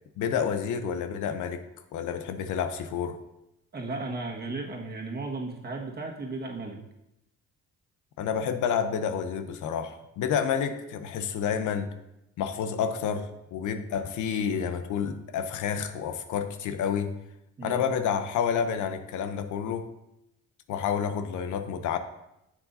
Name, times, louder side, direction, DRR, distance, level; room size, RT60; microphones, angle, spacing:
voice 1, 0.2-1.7 1.9-3.2 8.2-11.9 12.4-17.1 17.6-19.9 20.7-22.0, left 7 dB, 80° left, 8 dB, 0.7 m, -29 dB
voice 2, 3.7-6.8 17.6-17.9, right 3 dB, 35° right, -1 dB, 1.6 m, -35 dB
9.6 x 7.3 x 2.6 m, 0.87 s
cardioid pair, 90°, 30 cm